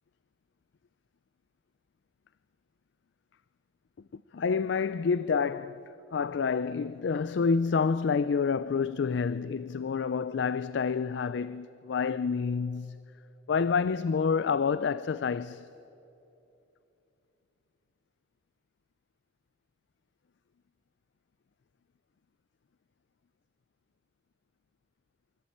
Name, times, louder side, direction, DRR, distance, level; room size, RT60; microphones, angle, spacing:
voice 1, 4.1-5.8 6.1-13.0 13.5-15.7, left 5 dB, 65° left, 0.4 m, -28 dB
24.0 x 14.5 x 8.6 m
head